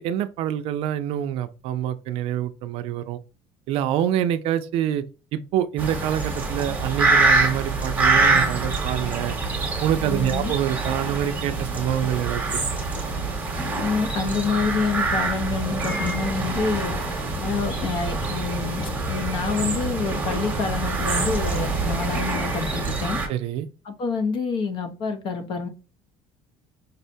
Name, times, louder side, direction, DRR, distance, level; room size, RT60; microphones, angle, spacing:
voice 1, 0.0-3.2 3.7-5.0 5.3-9.3 9.8-12.9 23.3-23.7, right 10 dB, 60° right, 0.4 m, -26 dB
sound 1, 5.8-23.3, right 3 dB, 15° right, 1.0 m, -25 dB
voice 2, 10.1-10.5 13.8-16.9 17.4-23.2 23.8-25.7, left 5 dB, 50° left, 0.7 m, -27 dB
5.3 x 2.1 x 2.6 m
cardioid pair, 150°, 11 cm